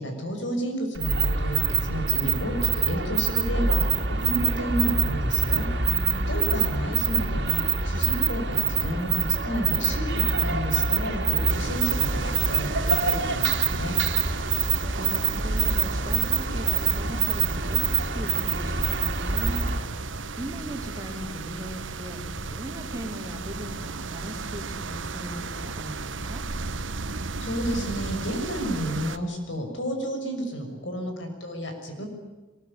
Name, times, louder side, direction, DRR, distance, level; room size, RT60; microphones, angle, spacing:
voice 1, 0.0-5.6 6.1-14.0 27.4-32.1, equal, 75° left, 4 dB, 6.4 m, -31 dB
sound 1, 0.9-19.9, right 6 dB, 60° right, 2.8 m, -25 dB
voice 2, 5.8-6.7 14.8-26.4, equal, 20° right, 2 dB, 4.2 m, -39 dB
sound 2, 11.5-29.2, right 3 dB, 80° right, 1.2 m, -35 dB
22.5 x 22.0 x 10.0 m, 1.2 s
head